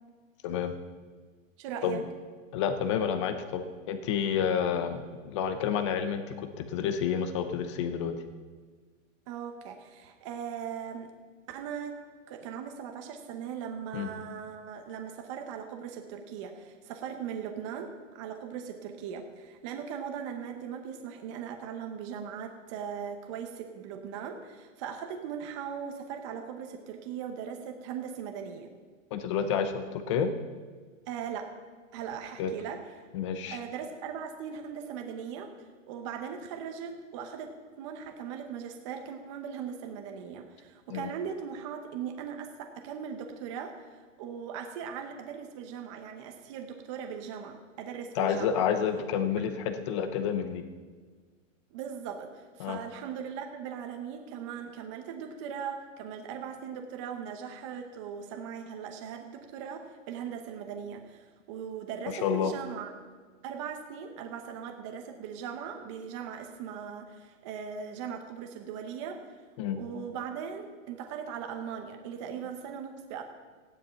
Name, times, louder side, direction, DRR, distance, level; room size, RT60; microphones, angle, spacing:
voice 1, 0.4-0.7 1.8-2.0 2.5-8.1 13.9-14.1 29.1-30.3 32.4-32.5 33.1-33.6 40.9-41.1 48.2-50.6 52.6-52.8 62.1-62.5 69.6-69.8, left 7 dB, 25° left, 9 dB, 0.7 m, -29 dB
voice 2, 1.6-2.0 9.3-11.1 11.5-12.0 12.3-28.7 31.1-31.5 31.9-33.1 33.5-35.5 35.9-48.6 51.7-62.9 63.4-69.2 69.7-73.2, right 7 dB, 25° right, 4 dB, 0.9 m, -39 dB
15.0 x 10.5 x 5.7 m, 1.5 s
hypercardioid pair, 165°, 40 cm